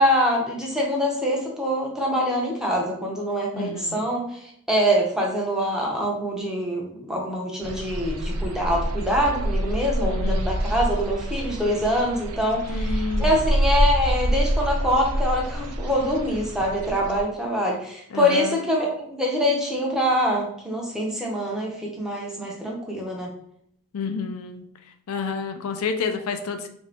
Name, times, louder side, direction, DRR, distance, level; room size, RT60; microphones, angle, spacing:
voice 1, 0.0-23.3, equal, 5° right, -2 dB, 0.6 m, -24 dB
voice 2, 3.5-4.0 10.0-10.4 12.7-13.4 18.1-18.5 23.9-24.6 25.1-26.7, left 5 dB, 75° left, 6 dB, 0.4 m, -29 dB
sound 1, 7.6-17.2, right 1 dB, 90° right, 0.5 m, -26 dB
3.6 x 2.6 x 3.3 m, 0.69 s
head